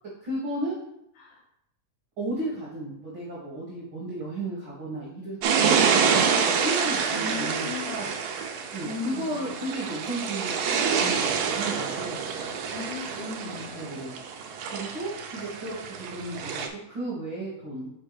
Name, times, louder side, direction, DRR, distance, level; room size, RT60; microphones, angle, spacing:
voice 1, 0.2-0.8 2.2-8.1 8.7-12.2 13.8-14.2 14.7-17.9, right 2 dB, 50° right, -6 dB, 1.9 m, -34 dB
sound 1, 5.4-16.7, right 6 dB, 75° right, 1.5 m, -27 dB
voice 2, 7.1-8.0 8.8-9.7 12.7-14.0, left 5 dB, 90° left, -4 dB, 2.4 m, -37 dB
7.2 x 5.5 x 3.3 m, 0.82 s
omnidirectional pair, 3.5 m